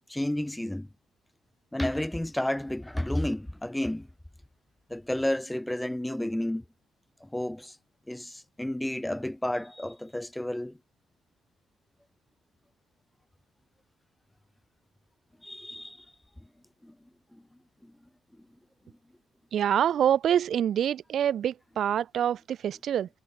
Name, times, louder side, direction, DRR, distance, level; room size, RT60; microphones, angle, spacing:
voice 1, 0.1-0.9 1.7-4.1 4.9-6.6 7.2-7.8 8.1-10.7 15.4-16.0 16.8-16.9, left 1 dB, 5° left, 7.9 m, -31 dB
voice 2, 19.5-23.1, right 9 dB, 65° right, 3.6 m, -26 dB
cardioid pair, 90°, 0 cm